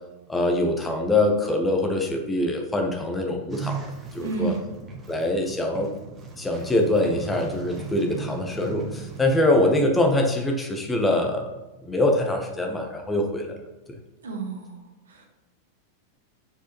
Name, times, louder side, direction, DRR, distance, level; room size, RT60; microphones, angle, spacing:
voice 1, 0.3-3.8 4.1-4.5 5.1-5.9 6.4-11.5 11.8-13.5, left 1 dB, 10° left, 2 dB, 0.9 m, -23 dB
sound 1, 3.5-9.4, right 4 dB, 20° right, 1.5 m, -37 dB
voice 2, 4.2-4.7 14.2-14.8 15.1-15.2, right 4 dB, 65° right, 1 dB, 1.2 m, -30 dB
6.9 x 4.7 x 3.0 m, 1.1 s
figure-of-eight pair, 90°, 0 cm